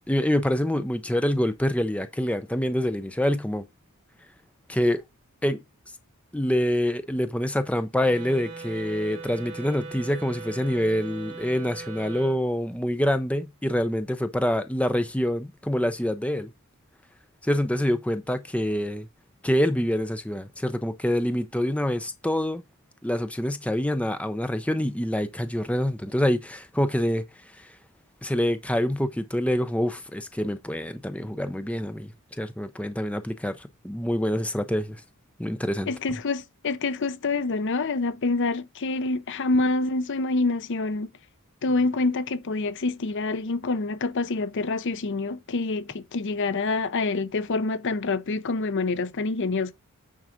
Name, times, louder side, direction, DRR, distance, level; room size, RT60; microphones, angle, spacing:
voice 1, 0.0-3.6 4.7-5.0 5.4-5.6 6.3-16.5 17.4-19.1 19.4-22.6 23.0-27.2 27.6-27.7 28.2-35.0 35.4-35.9, equal, 5° left, 0.6 m, -26 dB
Wind instrument woodwind instrument, 8.0-12.4, right 4 dB, 35° right, 3.9 m, -40 dB
voice 2, 35.9-41.1 41.6-49.7, left 3 dB, 55° left, 0.6 m, -26 dB
9.3 x 4.0 x 5.0 m
head